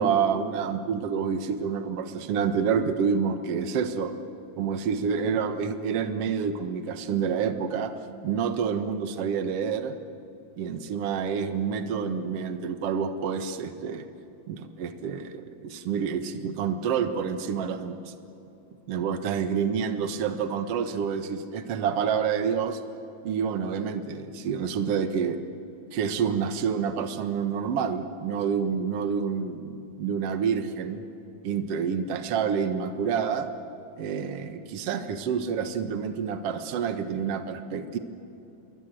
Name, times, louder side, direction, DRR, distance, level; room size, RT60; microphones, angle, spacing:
voice 1, 0.0-4.1 4.6-7.9 8.2-9.9 10.6-14.1 14.5-18.1 18.9-22.8 23.2-25.4 25.9-31.0 31.4-33.5 34.0-38.0, right 6 dB, 55° right, 8 dB, 2.0 m, -28 dB
28.5 x 21.5 x 7.7 m, 2.9 s
omnidirectional pair, 3.9 m